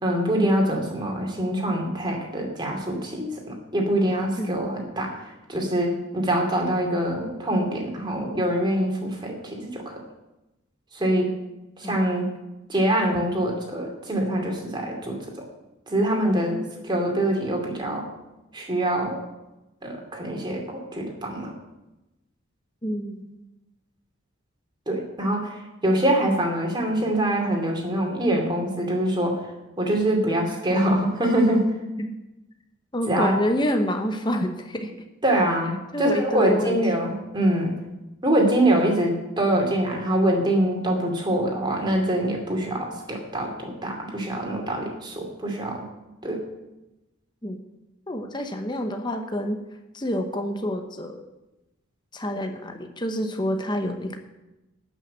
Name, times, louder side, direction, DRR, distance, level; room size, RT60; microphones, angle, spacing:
voice 1, 0.0-5.2 5.5-10.0 10.9-11.3 11.8-12.3 12.7-15.4 15.9-18.1 18.5-19.2 19.8-21.5 24.9-29.4 29.8-31.6 33.1-33.4 35.2-37.7 38.2-45.8 46.2-46.4, right 1 dB, 20° right, 0 dB, 2.5 m, -24 dB
voice 2, 22.8-23.4 32.0-32.1 32.9-34.9 35.9-36.8 47.4-47.6 48.1-49.6 49.9-51.2 52.1-54.2, equal, 20° left, 5 dB, 0.9 m, -27 dB
12.0 x 6.1 x 8.8 m, 0.98 s
head